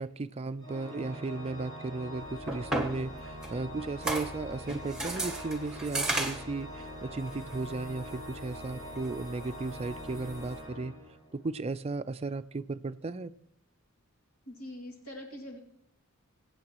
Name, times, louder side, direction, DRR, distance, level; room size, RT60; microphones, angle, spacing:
voice 1, 0.0-10.9 11.3-13.3, right 3 dB, 30° right, 0.4 m, -35 dB
Organ, 0.6-11.5, equal, 25° left, 5.8 m, -44 dB
sound 1, 2.2-10.6, right 2 dB, 5° right, 1.5 m, -37 dB
voice 2, 14.5-15.6, left 1 dB, 75° left, 2.4 m, -43 dB
22.5 x 8.6 x 3.0 m
head